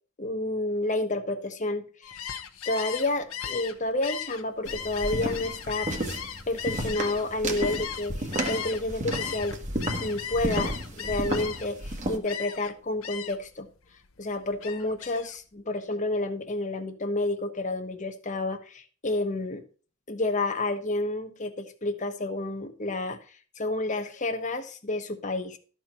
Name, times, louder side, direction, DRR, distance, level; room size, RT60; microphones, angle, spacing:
voice 1, 0.2-2.1 2.7-5.9 6.5-9.6 10.0-13.7 14.2-19.6 20.1-23.2 23.6-25.6, left 2 dB, 35° left, 1.2 m, -30 dB
Gull seagull, 2.0-8.8 9.1-11.8 12.3-12.7 13.0-13.5 13.9-15.3, left 8 dB, 75° left, 1.0 m, -37 dB
sound 1, 4.7-12.2, right 1 dB, 35° right, 1.6 m, -33 dB
13.0 x 4.6 x 5.6 m
head